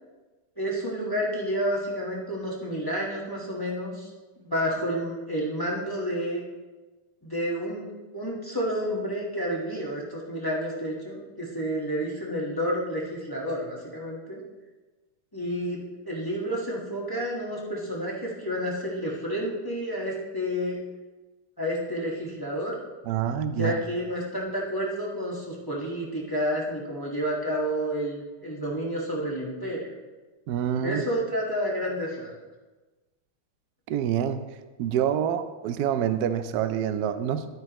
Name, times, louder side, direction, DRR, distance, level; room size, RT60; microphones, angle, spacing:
voice 1, 0.6-4.1 4.4-6.4 7.2-14.4 15.3-15.8 16.0-20.8 21.6-22.7 23.5-29.9 30.8-32.3, equal, 10° left, -4 dB, 1.3 m, -30 dB
voice 2, 23.1-23.8 30.5-31.0 33.9-34.4 34.8-37.5, right 9 dB, 85° right, 10 dB, 0.8 m, -26 dB
12.0 x 9.1 x 3.1 m, 1.2 s
omnidirectional pair, 2.4 m